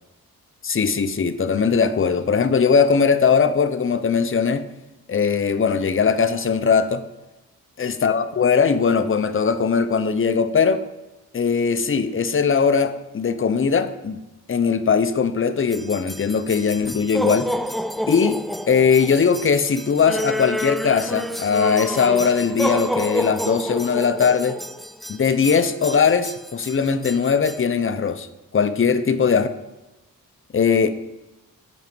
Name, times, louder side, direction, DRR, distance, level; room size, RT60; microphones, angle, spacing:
voice 1, 0.6-4.7 5.1-7.0 7.8-10.8 11.3-14.2 14.5-17.5 18.1-24.6 25.1-28.3 28.5-29.5 30.5-30.9, left 6 dB, 35° left, 11 dB, 0.6 m, -20 dB
sound 1, 15.7-27.6, equal, ahead, 0.3 m, -29 dB
6.1 x 5.0 x 6.0 m, 1.0 s
cardioid pair, 45°, 37 cm